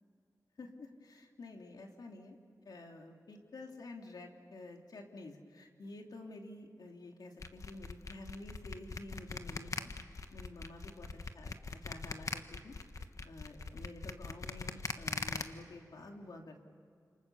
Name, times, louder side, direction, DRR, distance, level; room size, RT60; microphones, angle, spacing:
voice 1, 0.6-2.4 2.6-11.1 11.3-11.5 11.8-16.6, left 2 dB, 80° left, 2 dB, 3.1 m, -50 dB
sound 1, 7.4-15.4, left 4 dB, 55° left, 1.4 m, -41 dB
29.5 x 27.5 x 7.2 m, 2.3 s
wide cardioid pair, 125°, 7 cm